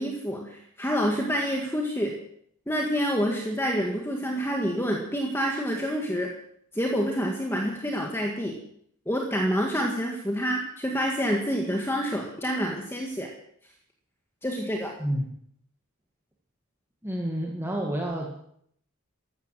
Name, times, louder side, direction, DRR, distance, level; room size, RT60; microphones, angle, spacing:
voice 1, 0.0-2.2 2.7-6.3 6.7-8.5 9.1-13.3 14.4-14.9, equal, 10° left, 0 dB, 1.8 m, -27 dB
voice 2, 17.0-18.4, right 1 dB, 10° right, -1 dB, 1.9 m, -29 dB
15.0 x 12.5 x 7.6 m, 0.68 s
head